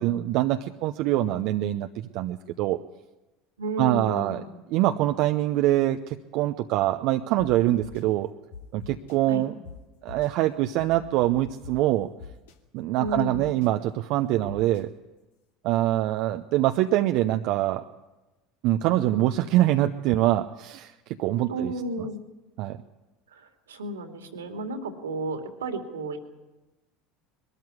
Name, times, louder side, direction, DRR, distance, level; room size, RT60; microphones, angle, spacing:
voice 1, 0.0-2.8 3.8-4.4 4.7-8.3 8.7-9.5 10.0-12.1 12.7-14.9 15.6-17.8 18.6-20.9 21.2-21.7 22.6-22.8, right 14 dB, 60° right, 7 dB, 0.8 m, -24 dB
voice 2, 3.6-4.5 9.2-9.4 13.0-13.6 21.5-22.2 23.3-26.2, right 1 dB, 85° right, 5 dB, 2.5 m, -33 dB
sound 1, 7.4-7.5 7.8-8.0 8.5-9.1 9.6-9.7 10.1-10.3 10.8-11.7 12.2-12.5 13.0-13.7 14.5-14.8, left 5 dB, 75° left, 2.3 m, -43 dB
21.5 x 13.5 x 9.7 m, 1.1 s
hypercardioid pair, 75°, 0 cm